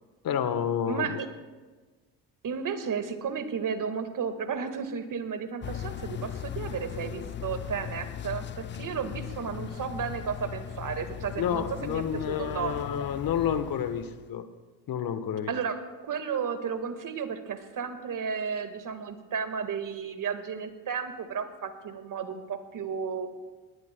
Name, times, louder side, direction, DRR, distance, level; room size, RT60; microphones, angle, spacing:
voice 1, 0.2-1.2 11.4-14.5 14.9-15.5, left 8 dB, 50° left, 11 dB, 1.2 m, -29 dB
voice 2, 0.9-1.3 2.4-12.7 15.5-23.3, right 6 dB, 45° right, 9 dB, 1.7 m, -33 dB
sound 1, 5.6-14.3, left 10 dB, 25° left, 0.4 m, -38 dB
19.0 x 19.0 x 2.2 m, 1.3 s
hypercardioid pair, 60°, 44 cm